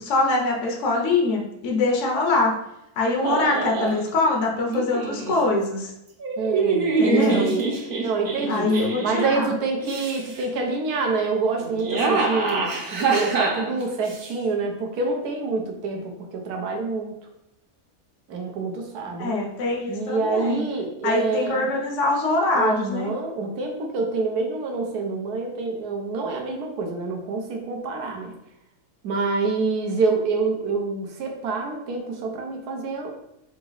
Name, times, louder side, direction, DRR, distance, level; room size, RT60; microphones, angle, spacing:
voice 1, 0.0-2.6 3.0-5.9 7.0-7.5 8.5-9.5 19.2-20.6 21.0-23.1, left 3 dB, 60° left, -1 dB, 1.0 m, -23 dB
sound 1, 3.2-4.0 4.7-5.3 6.2-9.4 9.8-10.4 11.6-14.3, right 4 dB, 50° right, 0.7 m, -25 dB
voice 2, 6.4-7.7 8.0-17.2 18.3-19.4 19.9-21.7 22.5-28.3 29.0-33.1, right 4 dB, 80° right, 2 dB, 1.3 m, -27 dB
4.0 x 2.8 x 3.9 m, 0.84 s
omnidirectional pair, 1.6 m